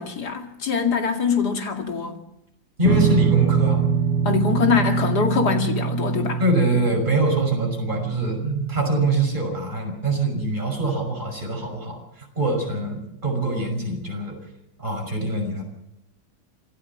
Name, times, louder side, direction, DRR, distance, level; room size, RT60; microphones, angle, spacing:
voice 1, 0.0-2.2 4.2-6.4 6.7-6.8, left 5 dB, 60° left, 4 dB, 2.9 m, -23 dB
voice 2, 2.8-3.9 6.4-14.4 14.8-15.6, right 2 dB, 25° right, 2 dB, 6.1 m, -24 dB
sound 1, 2.8-9.4, right 6 dB, 75° right, 1.8 m, -24 dB
26.5 x 13.5 x 7.3 m, 0.84 s
omnidirectional pair, 2.0 m